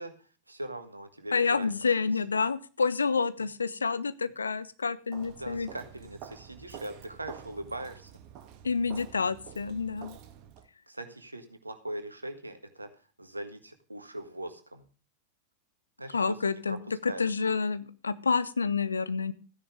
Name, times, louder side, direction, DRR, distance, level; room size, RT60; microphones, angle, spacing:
voice 1, 0.0-1.7 2.1-2.4 5.3-8.1 10.9-14.9 16.0-17.4, right 1 dB, 85° right, 7 dB, 1.7 m, -41 dB
voice 2, 1.3-5.7 8.6-10.2 16.1-19.3, left 5 dB, 75° left, 15 dB, 0.7 m, -29 dB
Walk footsteps, 5.1-10.7, right 9 dB, 40° right, 1.6 m, -48 dB
14.0 x 9.9 x 3.6 m, 0.37 s
figure-of-eight pair, 90°, 0 cm